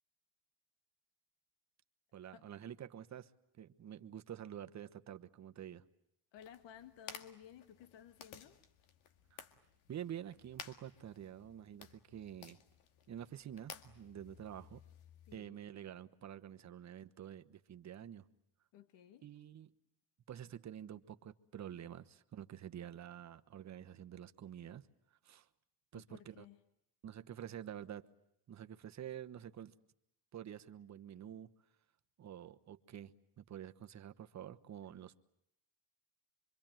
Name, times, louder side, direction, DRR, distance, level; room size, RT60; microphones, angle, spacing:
voice 1, 2.1-3.3 3.6-5.8 9.3-9.4 9.9-12.6 13.1-14.8 15.3-18.3 19.2-19.7 20.3-24.8 25.2-25.5 25.9-26.4 27.0-28.1 28.5-29.7 30.3-31.5 32.2-35.2, right 10 dB, 35° right, 9 dB, 1.2 m, -48 dB
voice 2, 6.3-8.6 15.2-15.6 16.6-16.7 18.7-19.3 20.5-20.6 25.9-26.6, left 9 dB, 65° left, 10 dB, 1.7 m, -57 dB
sound 1, 6.4-15.4, left 8 dB, 80° left, 2.1 m, -56 dB
25.5 x 24.5 x 9.0 m, 0.77 s
cardioid pair, 120°, 47 cm